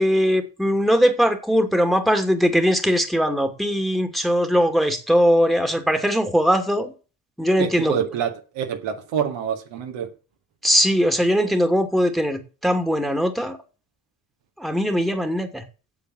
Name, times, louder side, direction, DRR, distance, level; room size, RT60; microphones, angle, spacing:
voice 1, 0.0-6.9 7.4-8.0 10.6-13.6 14.6-15.6, equal, ahead, 2.5 m, -20 dB
voice 2, 7.6-10.1, right 8 dB, 65° right, 2.3 m, -27 dB
8.5 x 7.5 x 6.3 m
hypercardioid pair, 60°, 47 cm